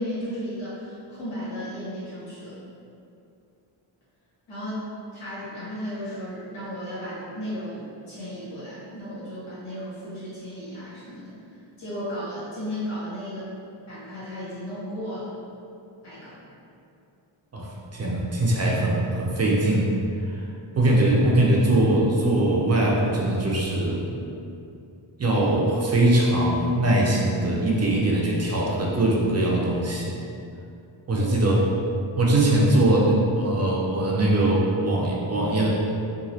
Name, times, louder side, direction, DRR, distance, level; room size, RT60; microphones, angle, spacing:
voice 1, 0.0-2.5 4.5-4.8 5.1-11.4 11.8-13.5 13.9-15.3 16.0-16.4 31.2-31.3, equal, 90° left, -11 dB, 1.4 m, -34 dB
voice 2, 17.5-19.9 20.2-20.5 20.7-24.1 25.2-30.1 31.1-31.6 32.2-35.7, right 1 dB, 35° right, -3 dB, 0.4 m, -21 dB
3.0 x 2.3 x 2.7 m, 2.6 s
wide cardioid pair, 95°, 48 cm